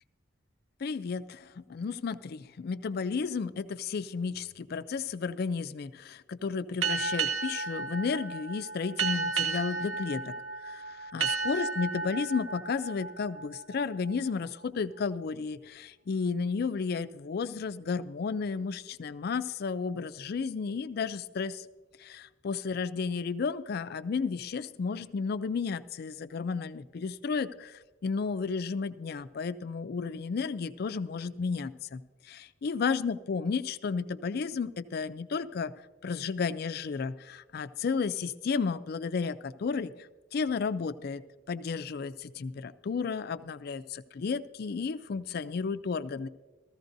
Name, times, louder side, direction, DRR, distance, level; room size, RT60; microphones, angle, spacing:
voice 1, 0.8-10.3 10.6-21.6 22.0-32.0 32.3-35.7 36.0-39.9 40.3-41.2 41.5-46.3, left 5 dB, 55° left, 14 dB, 0.4 m, -33 dB
sound 1, 6.8-14.1, right 4 dB, 80° right, 0.9 m, -33 dB
15.0 x 14.0 x 2.6 m, 1.2 s
head